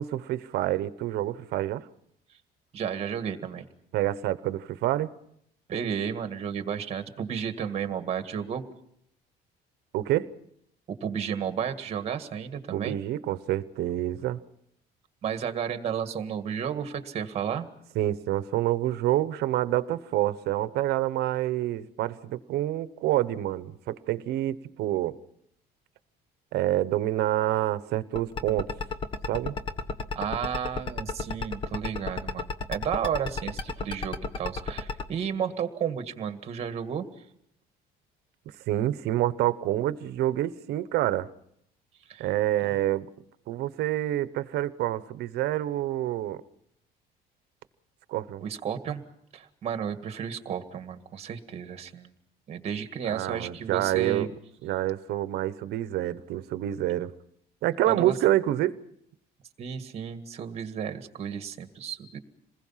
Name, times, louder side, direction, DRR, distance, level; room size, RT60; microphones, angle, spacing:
voice 1, 0.0-1.8 3.9-5.1 9.9-10.3 12.7-14.4 17.9-25.1 26.5-28.7 29.3-29.5 38.7-41.3 42.2-43.1 43.5-46.4 48.1-48.4 53.1-54.3 54.6-57.1 57.6-58.8, right 14 dB, 70° right, 14 dB, 1.0 m, -27 dB
voice 2, 2.7-3.7 5.7-8.6 10.9-13.0 15.2-17.7 30.2-37.1 42.1-42.3 42.6-42.8 48.4-49.0 49.3-52.1 52.5-54.3 57.8-58.2 59.6-62.2, right 8 dB, 40° right, 8 dB, 1.9 m, -32 dB
sound 1, 28.2-35.0, left 4 dB, 30° left, 1.3 m, -31 dB
27.5 x 20.5 x 5.7 m, 0.73 s
cardioid pair, 155°, 17 cm